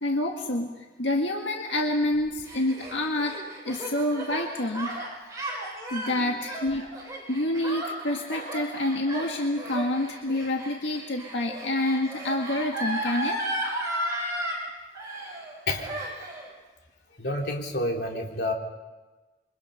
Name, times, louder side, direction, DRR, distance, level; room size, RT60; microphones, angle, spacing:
voice 1, 0.0-0.7 1.0-5.0 5.9-6.9 7.3-13.4, left 1 dB, 90° left, 1 dB, 1.9 m, -28 dB
Gasp, 2.1-14.6 14.9-15.5 15.8-16.5, right 1 dB, 20° right, 7.6 m, -34 dB
voice 2, 17.2-18.5, left 1 dB, 60° left, 0 dB, 3.4 m, -29 dB
28.0 x 24.5 x 5.7 m, 1.2 s
head